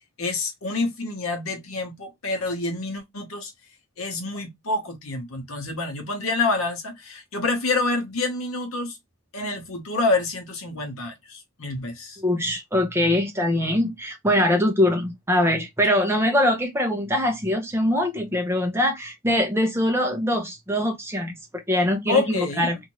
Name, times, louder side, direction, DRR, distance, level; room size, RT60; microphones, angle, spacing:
voice 1, 0.2-3.5 4.0-9.0 9.3-12.2 22.1-22.8, left 3 dB, 75° left, 1.0 m, -27 dB
voice 2, 12.2-22.8, left 1 dB, 10° right, 0.6 m, -23 dB
2.7 x 2.5 x 2.9 m
head